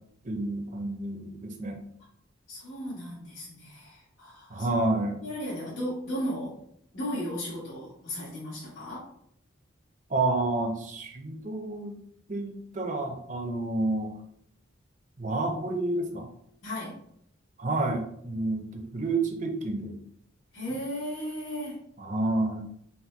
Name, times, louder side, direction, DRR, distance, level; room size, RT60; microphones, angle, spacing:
voice 1, 0.2-1.8 4.5-5.2 10.1-12.0 12.3-14.1 15.2-16.3 17.6-20.0 22.0-22.6, right 2 dB, 40° right, 4 dB, 0.6 m, -29 dB
voice 2, 2.5-4.7 5.2-6.6 6.9-9.1 16.6-16.9 20.5-21.8, equal, 85° left, -8 dB, 1.6 m, -35 dB
4.1 x 2.1 x 4.4 m, 0.69 s
head